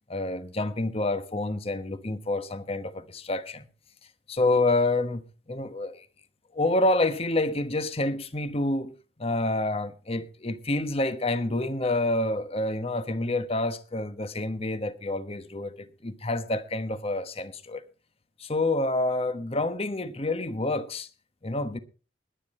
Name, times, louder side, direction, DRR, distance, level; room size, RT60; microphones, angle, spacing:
voice 1, 0.1-3.7 4.3-6.1 6.5-8.9 9.2-17.8 18.4-21.1 21.4-21.8, left 2 dB, 35° left, 1.1 m, -28 dB
20.5 x 9.2 x 4.3 m
head